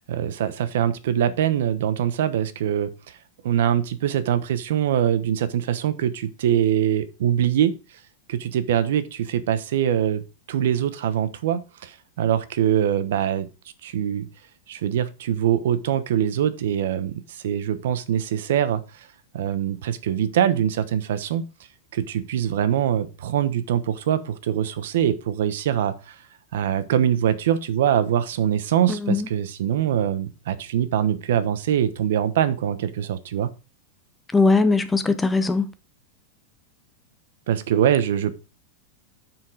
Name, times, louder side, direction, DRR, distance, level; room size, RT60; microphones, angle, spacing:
voice 1, 0.1-2.9 3.4-7.8 8.3-13.5 13.8-14.3 14.7-18.8 19.3-21.4 21.9-26.1 26.5-33.5 37.5-38.3, right 10 dB, 70° right, 1.1 m, -23 dB
voice 2, 34.3-35.7, left 3 dB, 5° left, 0.5 m, -19 dB
7.3 x 6.0 x 5.0 m
supercardioid pair, 170°, 0 cm